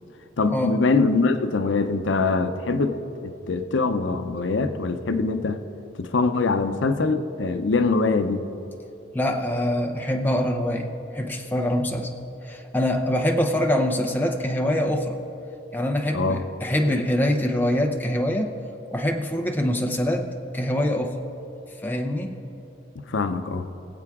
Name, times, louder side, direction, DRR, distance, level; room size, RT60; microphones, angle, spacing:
voice 1, 0.4-5.6 6.0-8.4 16.1-16.4 23.1-23.7, left 3 dB, 80° left, 8 dB, 0.6 m, -23 dB
voice 2, 9.1-12.1 12.4-15.2 15.7-18.6 18.9-21.2 21.8-22.4, left 1 dB, 10° left, 3 dB, 0.7 m, -24 dB
23.0 x 7.8 x 3.6 m, 2.9 s
head